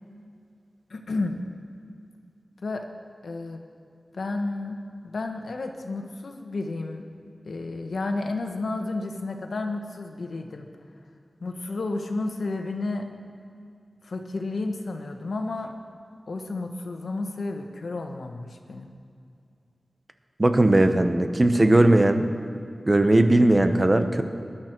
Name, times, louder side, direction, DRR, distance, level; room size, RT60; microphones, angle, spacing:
voice 1, 0.9-1.3 2.6-2.8 3.2-3.6 4.1-4.8 5.0-7.1 7.4-10.7 11.4-13.1 14.0-15.7 16.3-18.9, left 2 dB, 80° left, 4 dB, 1.2 m, -31 dB
voice 2, 20.4-22.2 22.9-24.2, right 1 dB, 30° right, 7 dB, 0.9 m, -18 dB
20.0 x 11.5 x 4.6 m, 2.4 s
wide cardioid pair, 70°, 0 cm